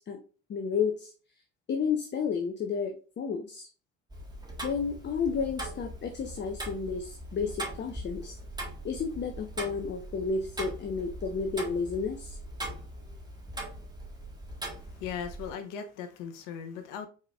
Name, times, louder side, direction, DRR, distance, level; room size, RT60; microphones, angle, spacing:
voice 1, 0.5-1.1 1.7-3.7 4.6-8.4 8.8-12.4, left 5 dB, 25° left, 0.7 m, -31 dB
Tick-tock, 4.1-15.5, right 1 dB, 10° right, 1.5 m, -41 dB
voice 2, 14.8-17.1, left 7 dB, 55° left, 0.9 m, -38 dB
4.8 x 4.3 x 2.3 m
figure-of-eight pair, 60°, 39 cm